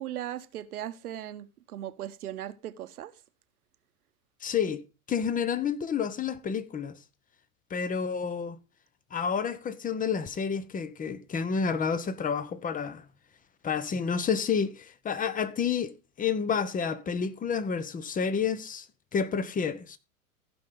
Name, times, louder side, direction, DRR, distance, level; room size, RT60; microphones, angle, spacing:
voice 1, 0.0-3.1, right 12 dB, 80° right, 1.2 m, -38 dB
voice 2, 4.4-7.0 7.7-8.6 9.1-13.0 13.6-18.9 19.1-20.0, left 6 dB, 20° left, 0.9 m, -30 dB
15.5 x 5.5 x 3.7 m
hypercardioid pair, 105°, 44 cm